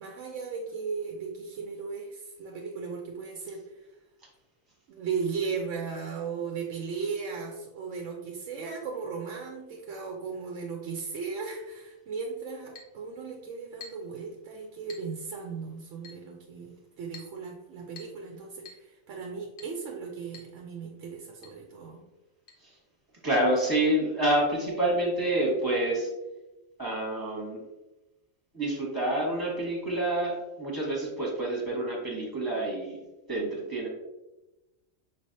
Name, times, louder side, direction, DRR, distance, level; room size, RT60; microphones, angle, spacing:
voice 1, 0.0-3.9 4.9-22.0, right 5 dB, 70° right, 1 dB, 0.9 m, -36 dB
Chink clink, 12.7-13.0 13.8-14.1 14.9-15.1 16.0-16.3 17.1-17.4 18.0-18.2 18.6-18.9 19.6-19.8 20.3-20.5 20.8-20.9 21.4-21.6 22.5-22.6, left 5 dB, 45° left, 0.9 m, -48 dB
voice 2, 23.2-26.1 26.8-27.6 28.5-33.0 33.3-33.9, right 1 dB, 15° right, -3 dB, 1.3 m, -28 dB
5.8 x 3.2 x 2.7 m, 1.0 s
omnidirectional pair, 1.4 m